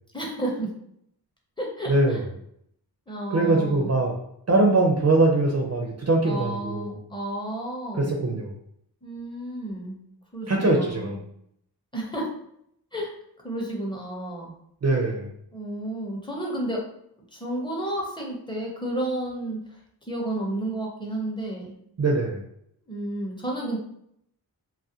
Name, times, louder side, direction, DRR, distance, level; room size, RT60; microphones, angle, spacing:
voice 1, 0.1-0.7 1.6-2.2 3.1-3.9 6.2-8.2 9.0-10.0 10.3-11.2 11.9-12.3 12.9-13.1 13.4-14.6 15.5-16.8 17.3-19.8 20.1-21.8 22.8-23.8, right 1 dB, 10° left, -2 dB, 0.6 m, -31 dB
voice 2, 1.9-2.2 3.3-4.1 4.5-6.9 7.9-8.5 10.5-11.2 14.8-15.3 22.0-22.4, right 2 dB, 40° right, 0 dB, 0.4 m, -22 dB
2.4 x 2.1 x 2.7 m, 0.72 s
wide cardioid pair, 80°, 41 cm